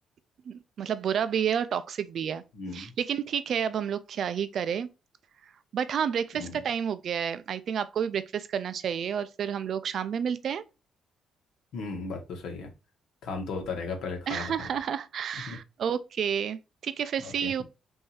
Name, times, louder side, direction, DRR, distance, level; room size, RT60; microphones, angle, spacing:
voice 1, 0.5-2.4 2.7-4.9 5.7-10.6 14.3-17.6, right 8 dB, 55° right, 0.4 m, -30 dB
voice 2, 2.5-2.9 6.3-6.6 11.7-12.7 13.2-14.7 15.5-15.6 17.2-17.6, left 4 dB, 75° left, 1.3 m, -36 dB
5.4 x 2.7 x 3.3 m
cardioid pair, 135°, 0 cm